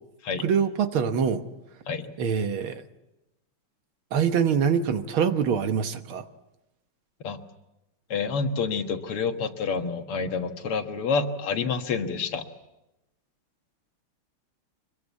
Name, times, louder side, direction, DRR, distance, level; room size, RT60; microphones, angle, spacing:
voice 1, 0.4-1.4 2.2-2.8 4.1-6.2, right 7 dB, 70° right, 9 dB, 2.0 m, -24 dB
voice 2, 8.1-12.4, left 5 dB, 85° left, 6 dB, 2.4 m, -28 dB
24.5 x 22.0 x 8.3 m, 0.94 s
omnidirectional pair, 2.4 m